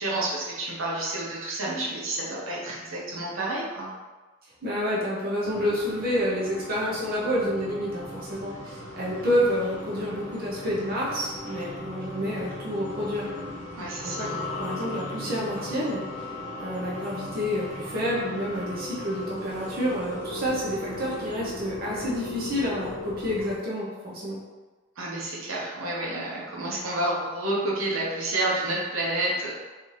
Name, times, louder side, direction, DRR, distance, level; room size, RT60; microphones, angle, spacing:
voice 1, 0.0-3.9 13.8-14.5 25.0-29.5, right 1 dB, 80° right, -4 dB, 0.9 m, -29 dB
voice 2, 4.6-13.3 14.0-14.3 14.6-16.3 16.6-24.4, equal, 45° right, -6 dB, 0.8 m, -29 dB
sound 1, 5.4-23.5, left 1 dB, 10° left, 1.1 m, -37 dB
4.1 x 2.7 x 3.3 m, 1.2 s
head